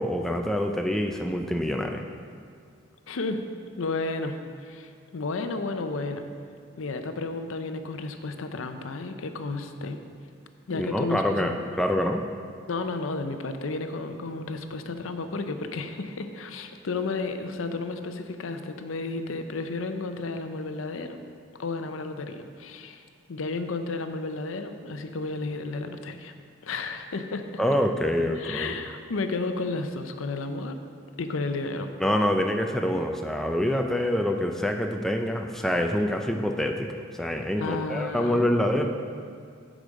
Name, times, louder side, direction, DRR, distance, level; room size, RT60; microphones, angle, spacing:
voice 1, 0.0-2.0 10.8-12.2 27.6-28.7 32.0-36.9 37.1-38.9, left 1 dB, ahead, 3 dB, 0.3 m, -26 dB
voice 2, 3.1-3.4 3.8-6.3 6.8-10.0 10.7-11.5 12.7-21.2 21.6-26.3 26.6-27.4 28.4-30.8 31.2-31.9 37.6-38.4, left 3 dB, 85° left, 8 dB, 0.6 m, -32 dB
8.4 x 5.0 x 6.3 m, 2.2 s
head